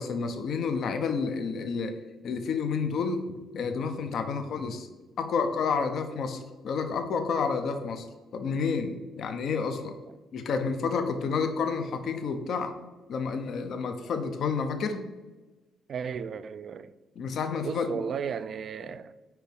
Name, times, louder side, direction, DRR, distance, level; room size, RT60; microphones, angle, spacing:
voice 1, 0.0-2.0 2.2-3.3 3.5-4.9 5.2-8.1 8.3-10.0 10.3-12.7 13.1-15.1 17.2-18.0, left 5 dB, 65° left, 0.7 m, -30 dB
voice 2, 15.9-16.9 17.6-19.1, right 7 dB, 55° right, 0.3 m, -35 dB
4.6 x 4.6 x 5.2 m
cardioid pair, 90°, 0 cm